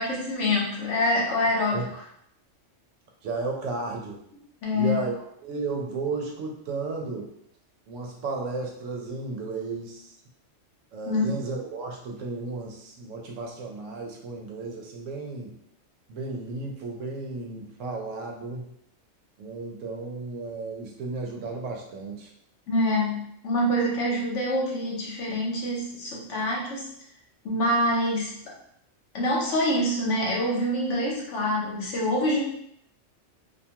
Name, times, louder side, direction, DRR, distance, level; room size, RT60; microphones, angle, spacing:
voice 1, 0.0-1.9 4.6-5.0 11.1-11.3 22.7-26.9 27.4-28.5 29.1-32.4, left 1 dB, 70° left, -3 dB, 1.1 m, -26 dB
voice 2, 3.2-4.2 4.7-7.3 7.9-10.1 10.9-15.5 16.1-18.7 19.4-22.3, right 3 dB, 80° right, 1 dB, 1.0 m, -33 dB
2.5 x 2.2 x 2.8 m, 0.71 s
omnidirectional pair, 1.3 m